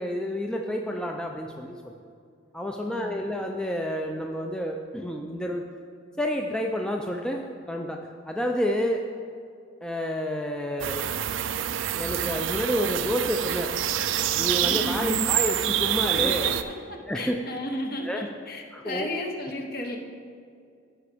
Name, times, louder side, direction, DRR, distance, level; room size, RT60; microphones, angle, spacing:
voice 1, 0.0-2.0 2.5-5.6 6.2-8.0 8.3-9.0 9.8-11.1 11.9-13.7 14.3-16.5 17.1-17.4 18.0-18.3 18.7-19.1, equal, 5° left, 1 dB, 0.4 m, -29 dB
voice 2, 2.8-3.1 14.6-15.3 16.1-20.0, left 1 dB, 50° left, 2 dB, 1.0 m, -34 dB
sound 1, 10.8-16.6, right 10 dB, 70° right, 0.4 m, -27 dB
15.0 x 5.7 x 3.5 m, 2.3 s
head